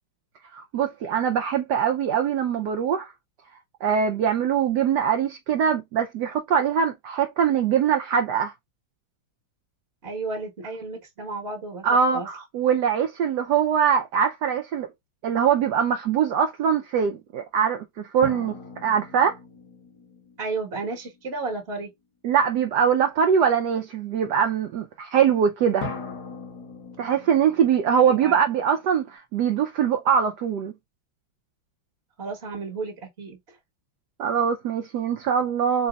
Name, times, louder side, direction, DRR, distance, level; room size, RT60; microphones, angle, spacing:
voice 1, 0.5-3.1 3.8-8.5 11.8-14.9 15.2-19.4 22.2-25.9 27.0-30.7 34.2-35.9, right 7 dB, 70° right, 1.0 m, -22 dB
voice 2, 10.0-11.9 12.1-12.3 20.4-21.9 28.0-28.4 32.2-33.6, right 3 dB, 35° right, 1.2 m, -33 dB
sound 1, 18.2-21.6 25.8-29.1, left 3 dB, 55° left, 1.7 m, -40 dB
4.0 x 3.9 x 2.3 m
omnidirectional pair, 2.3 m